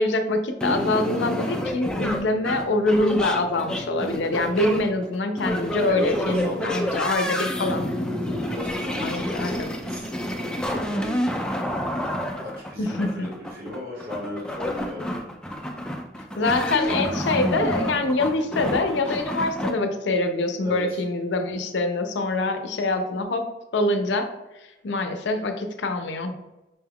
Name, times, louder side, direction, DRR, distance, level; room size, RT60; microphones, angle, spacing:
voice 1, 0.0-7.9 9.0-9.7 12.8-13.3 16.4-24.3 24.8-26.3, left 2 dB, 80° left, 7 dB, 0.5 m, -25 dB
sound 1, 0.6-19.7, equal, 5° left, 0.3 m, -29 dB
voice 2, 5.9-7.0 8.3-10.1 10.4-11.2 12.2-15.2 16.3-16.5 20.6-21.0, left 1 dB, 55° right, -6 dB, 1.4 m, -36 dB
5.2 x 2.3 x 3.5 m, 1.0 s
head